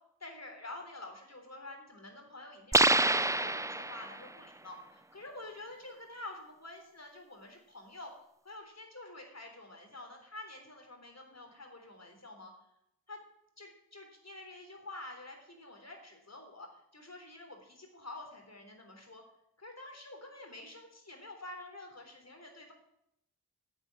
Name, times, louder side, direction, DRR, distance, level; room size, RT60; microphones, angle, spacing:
voice 1, 0.2-8.1 8.4-12.5 13.1-13.2 13.6-19.2 19.6-22.7, left 2 dB, 45° left, 3 dB, 3.7 m, -48 dB
sound 1, 2.7-4.3, right 2 dB, 10° right, 0.4 m, -27 dB
10.5 x 8.1 x 8.3 m, 0.78 s
cardioid pair, 45°, 38 cm